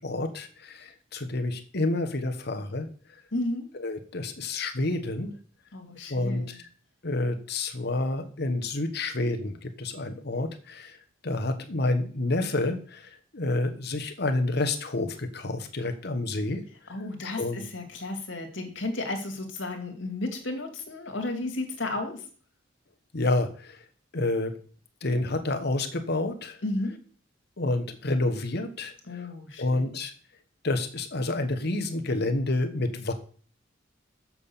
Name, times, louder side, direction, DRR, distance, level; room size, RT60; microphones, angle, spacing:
voice 1, 0.0-2.9 3.8-5.3 6.1-6.6 7.0-10.9 11.2-13.0 13.3-16.6 17.2-17.6 23.1-23.8 24.1-24.5 25.0-26.6 27.6-29.3 29.6-30.1 30.6-33.1, left 2 dB, 55° left, 7 dB, 1.2 m, -29 dB
voice 2, 3.3-3.7 5.7-6.6 16.9-22.2 26.6-27.0 29.1-29.9, left 2 dB, 70° left, 4 dB, 2.3 m, -33 dB
7.3 x 6.3 x 7.0 m, 0.43 s
head